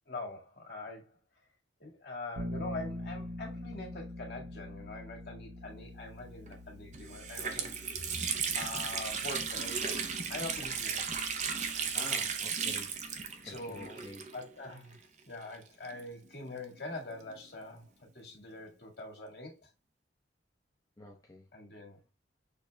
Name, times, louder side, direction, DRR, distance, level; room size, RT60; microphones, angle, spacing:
voice 1, 0.1-1.2 1.8-8.2 8.5-10.0 10.3-11.1 13.4-14.0 14.3-19.7 21.5-22.0, left 2 dB, 60° left, 1.9 m, -44 dB
Bass guitar, 2.4-12.2, left 1 dB, 85° right, 0.6 m, -45 dB
Water tap faucet, 6.5-6.6 6.9-14.7 14.9-15.0 15.8-17.4, right 6 dB, 40° right, 0.6 m, -35 dB
voice 2, 11.9-14.2 21.0-21.4, left 1 dB, 20° left, 0.7 m, -49 dB
6.5 x 2.3 x 3.3 m
head